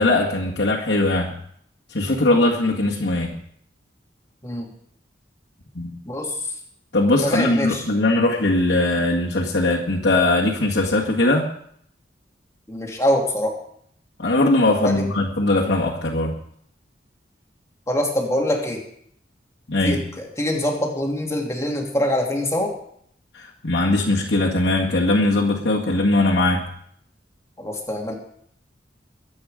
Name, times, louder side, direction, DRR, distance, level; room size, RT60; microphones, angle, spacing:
voice 1, 0.0-1.3 1.9-3.4 5.8-6.0 6.9-11.5 14.2-16.4 19.7-20.0 23.3-26.7, left 2 dB, 70° left, -5 dB, 1.9 m, -20 dB
voice 2, 7.2-7.8 12.7-13.6 14.8-15.0 17.9-18.8 19.8-22.7 27.6-28.1, left 1 dB, 15° left, 0 dB, 2.8 m, -24 dB
23.0 x 8.5 x 5.1 m, 0.68 s
head